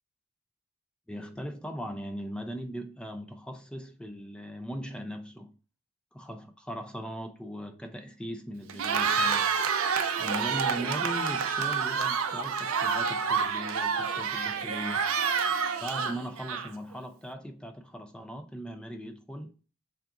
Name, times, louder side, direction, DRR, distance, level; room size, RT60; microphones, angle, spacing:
voice 1, 1.1-5.6 6.1-9.6 10.2-15.1 15.8-19.6, equal, 5° left, 0.4 m, -39 dB
Cheering, 8.7-16.9, right 6 dB, 70° right, 0.4 m, -28 dB
3.6 x 2.5 x 4.5 m
head